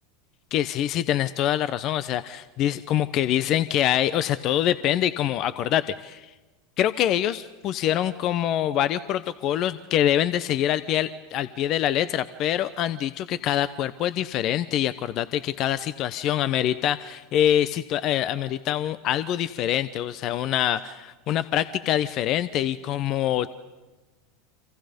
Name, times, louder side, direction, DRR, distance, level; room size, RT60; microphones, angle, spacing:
voice 1, 0.5-6.3 6.8-23.5, left 11 dB, 50° left, 14 dB, 0.8 m, -25 dB
29.0 x 26.5 x 5.3 m, 1.1 s
hypercardioid pair, 90°, 0 cm